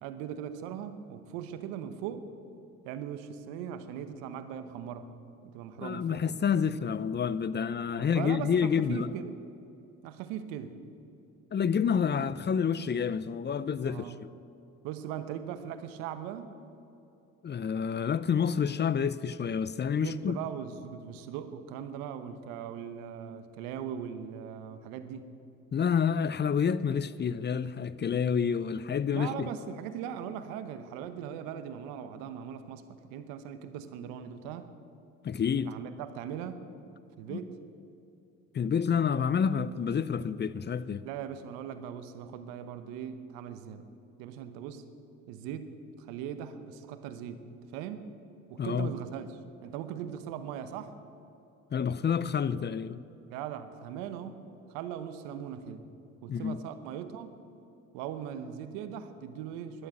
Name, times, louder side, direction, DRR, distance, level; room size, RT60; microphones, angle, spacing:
voice 1, 0.0-2.3 2.8-5.1 5.4-6.4 8.0-9.4 10.0-10.7 13.9-14.2 14.8-16.5 20.0-25.3 29.1-34.7 35.6-36.6 37.2-37.5 41.0-43.9 44.2-44.9 45.3-47.4 47.7-48.1 48.5-50.9 53.3-54.4 54.7-55.8 56.2-57.3 57.9-59.9, right 9 dB, 85° right, 1.0 m, -39 dB
voice 2, 5.8-9.1 11.5-14.0 17.4-20.4 25.7-29.5 35.2-35.7 37.3-37.4 38.5-41.1 48.6-48.9 51.7-53.0 56.3-56.6, left 7 dB, 30° left, 0.5 m, -28 dB
11.5 x 11.0 x 8.5 m
supercardioid pair, 65°, 34 cm